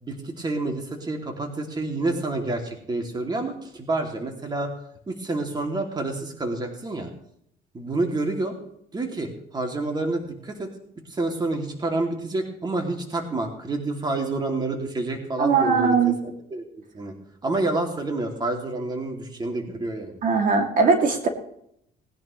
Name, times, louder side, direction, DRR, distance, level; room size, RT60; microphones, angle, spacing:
voice 1, 0.0-4.7 5.1-7.1 7.7-8.5 8.9-10.7 11.1-16.0 16.2-17.1 17.4-20.2, right 2 dB, 25° right, 3 dB, 2.7 m, -28 dB
voice 2, 15.4-16.1 20.2-21.3, right 5 dB, 55° right, 3 dB, 2.7 m, -20 dB
19.5 x 11.0 x 3.2 m, 0.71 s
cardioid pair, 110°, 17 cm